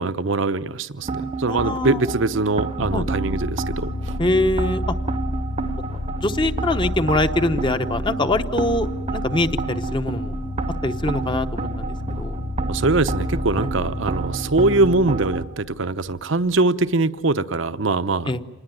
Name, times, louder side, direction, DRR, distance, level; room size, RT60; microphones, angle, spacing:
voice 1, 0.0-3.9 12.7-18.4, right 3 dB, 70° right, 12 dB, 0.9 m, -22 dB
sound 1, 1.0-15.4, right 3 dB, 35° right, 0.9 m, -30 dB
voice 2, 1.5-2.1 2.9-3.1 4.2-4.8 6.2-10.3 10.8-12.4 18.3-18.4, left 2 dB, 25° left, 9 dB, 0.9 m, -23 dB
sound 2, 2.8-16.2, left 1 dB, 55° left, 0.9 m, -30 dB
27.0 x 20.0 x 9.1 m, 1.2 s
head